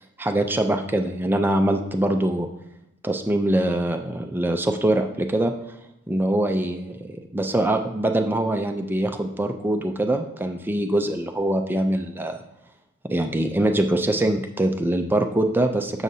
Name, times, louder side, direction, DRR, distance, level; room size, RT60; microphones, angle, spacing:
voice 1, 0.2-2.5 3.0-5.5 6.1-12.4 13.1-16.0, right 1 dB, 10° right, 5 dB, 0.4 m, -23 dB
7.4 x 6.4 x 2.7 m, 0.88 s
head